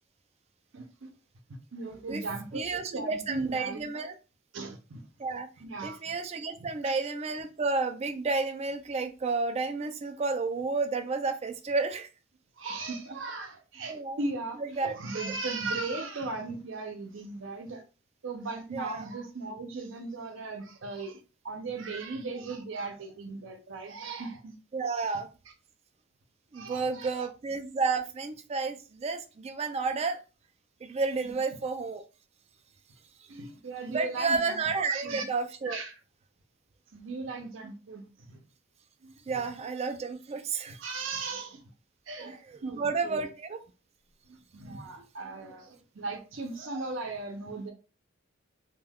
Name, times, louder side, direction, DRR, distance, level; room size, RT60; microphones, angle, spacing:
voice 1, 0.7-1.1 1.7-2.6 2.9-4.0 4.5-5.0 5.6-6.0 6.6-7.0 12.6-17.8 18.2-24.6 25.1-25.2 26.5-27.1 31.2-31.3 33.3-35.2 35.6-35.9 36.9-38.4 39.0-39.4 40.7-41.6 42.1-43.3 44.3-47.7, right 3 dB, 75° right, 0.6 m, -37 dB
voice 2, 2.5-4.1 5.2-5.5 5.8-12.1 13.9-14.2 14.6-14.9 15.2-15.4 18.7-19.1 24.7-25.3 26.5-30.2 30.8-32.0 33.9-35.8 39.3-40.8 42.2-43.6, right 4 dB, 35° right, 0.4 m, -31 dB
2.3 x 2.2 x 3.4 m
head